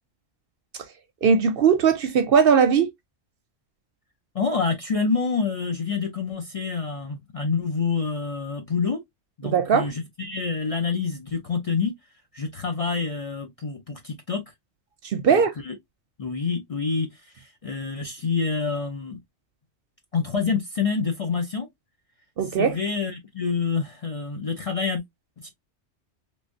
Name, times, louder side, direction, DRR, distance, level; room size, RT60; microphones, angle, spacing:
voice 1, 1.2-2.9 9.4-9.9 15.0-15.5 22.4-22.8, right 6 dB, 60° right, 0.7 m, -19 dB
voice 2, 4.3-9.0 9.4-11.9 12.3-14.4 15.3-15.8 16.2-17.1 17.3-19.2 20.1-21.7 22.6-25.0 25.4-25.5, left 5 dB, 40° left, 0.5 m, -27 dB
3.2 x 3.1 x 2.6 m
omnidirectional pair, 1.2 m